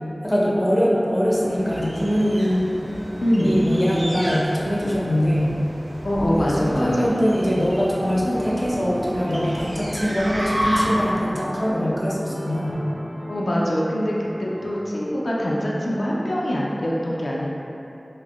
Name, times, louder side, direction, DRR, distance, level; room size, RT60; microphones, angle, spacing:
voice 1, 0.2-2.7 3.4-5.5 6.4-12.8, equal, 15° left, -6 dB, 0.6 m, -22 dB
sound 1, 1.4-11.2, equal, 55° right, 0.5 m, -31 dB
voice 2, 3.2-3.6 6.0-7.2 13.3-17.5, equal, 80° left, -5 dB, 0.3 m, -23 dB
sound 2, 8.3-14.7, equal, 20° right, 0.9 m, -37 dB
2.6 x 2.4 x 3.5 m, 2.9 s
wide cardioid pair, 55°, 0 cm